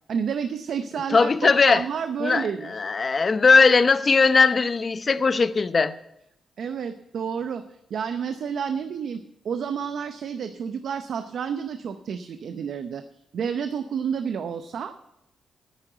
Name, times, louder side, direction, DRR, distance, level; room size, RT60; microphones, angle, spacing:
voice 1, 0.1-2.7 6.6-7.6 7.9-13.0 13.3-14.9, right 7 dB, 70° right, 0.7 m, -30 dB
voice 2, 1.1-1.8 2.2-5.9, left 4 dB, 40° left, 0.7 m, -19 dB
9.8 x 9.6 x 7.9 m
cardioid pair, 80°, 0 cm